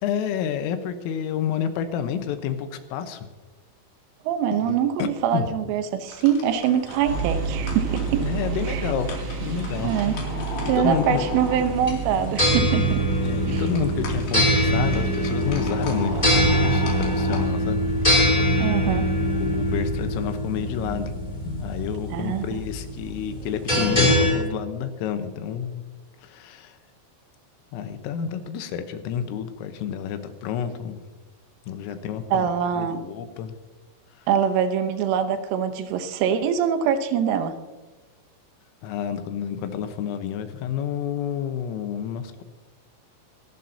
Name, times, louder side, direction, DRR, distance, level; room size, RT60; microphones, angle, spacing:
voice 1, 0.0-3.3 4.6-5.5 8.2-9.1 9.4-9.9 10.6-11.3 13.1-18.6 19.2-21.1 21.4-25.8 26.2-26.8 27.7-31.0 31.7-33.6 34.2-34.3 38.8-42.4, left 8 dB, 85° left, 8 dB, 3.7 m, -30 dB
voice 2, 4.3-8.3 8.7-8.8 9.8-10.2 10.7-13.0 13.5-13.6 16.1-16.2 18.6-19.1 22.1-22.4 32.3-33.0 34.3-37.5, right 8 dB, 80° right, 8 dB, 3.5 m, -24 dB
sound 1, 6.1-17.4, left 3 dB, 60° left, 4.4 m, -38 dB
sound 2, 7.1-19.9, right 4 dB, 60° right, 3.7 m, -32 dB
sound 3, 11.6-24.3, equal, 10° left, 2.5 m, -23 dB
25.0 x 12.0 x 2.8 m, 1.2 s
omnidirectional pair, 5.7 m